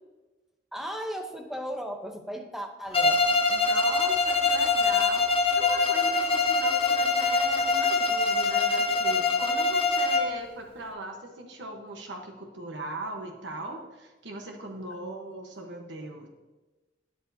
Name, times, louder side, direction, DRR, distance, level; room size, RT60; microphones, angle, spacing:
voice 1, 0.7-3.2, equal, ahead, 4 dB, 0.8 m, -36 dB
Bowed string instrument, 2.9-10.4, left 3 dB, 30° left, 0.8 m, -24 dB
voice 2, 3.5-16.3, right 2 dB, 90° right, 2 dB, 1.1 m, -39 dB
12.0 x 9.5 x 2.8 m, 1.2 s
head